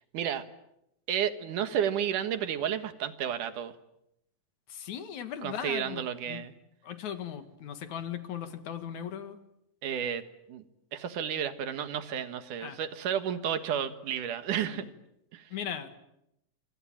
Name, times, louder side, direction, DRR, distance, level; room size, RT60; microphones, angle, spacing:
voice 1, 1.1-3.7 5.4-6.5 9.8-10.6 10.9-14.9 15.3-15.5, right 9 dB, 75° right, 11 dB, 3.0 m, -32 dB
voice 2, 4.7-6.5 6.8-9.4 12.6-12.8 14.7-14.8 15.5-15.9, left 9 dB, 65° left, 9 dB, 3.1 m, -38 dB
27.0 x 25.5 x 8.8 m, 0.82 s
omnidirectional pair, 3.7 m